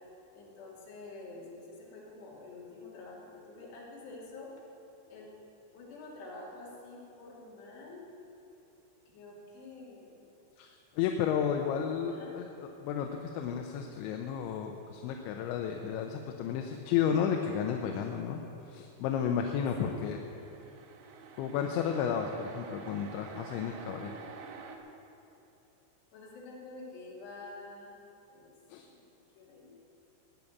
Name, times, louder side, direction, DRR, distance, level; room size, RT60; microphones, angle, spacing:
voice 1, 0.3-4.5 5.1-5.3 5.7-8.1 9.1-10.2 11.4-11.5 11.8-12.3 19.6-20.1 26.1-27.9 28.3-28.5 28.8-29.7, left 3 dB, 70° left, -4 dB, 4.9 m, -48 dB
voice 2, 10.6-13.1 13.3-18.4 18.7-20.2 21.4-24.1 28.7-28.8, left 8 dB, 90° left, 3 dB, 3.2 m, -32 dB
sound 1, 20.0-24.8, right 5 dB, 90° right, 3.4 m, -48 dB
19.0 x 7.2 x 9.5 m, 2.9 s
omnidirectional pair, 5.2 m